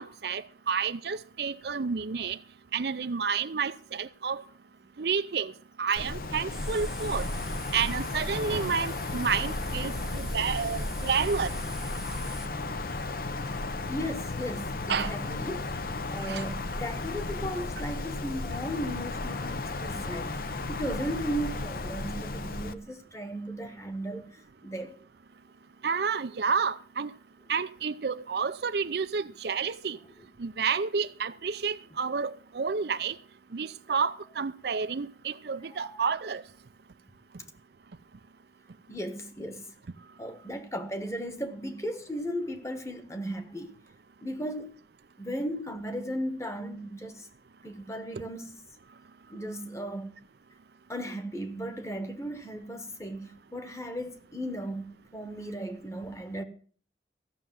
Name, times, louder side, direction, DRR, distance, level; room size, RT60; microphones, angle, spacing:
voice 1, 0.0-2.4 2.7-4.4 5.0-5.5 5.8-7.3 7.7-11.5 14.9-15.1 16.2-16.4 18.5-18.6 25.8-27.1 27.5-30.0 30.4-33.2 33.5-36.4, right 5 dB, 60° right, 0.5 m, -30 dB
Wind, 6.0-22.7, left 3 dB, 50° left, 0.7 m, -34 dB
sound 1, 6.5-12.5, right 1 dB, 5° right, 0.7 m, -39 dB
voice 2, 13.9-15.7 16.1-20.4 20.7-24.9 35.7-36.1 38.9-39.7 40.2-43.8 44.2-44.7 45.2-47.3 47.6-48.6 49.3-50.1 50.9-56.4, equal, 15° left, 1.3 m, -36 dB
15.5 x 6.7 x 7.4 m
head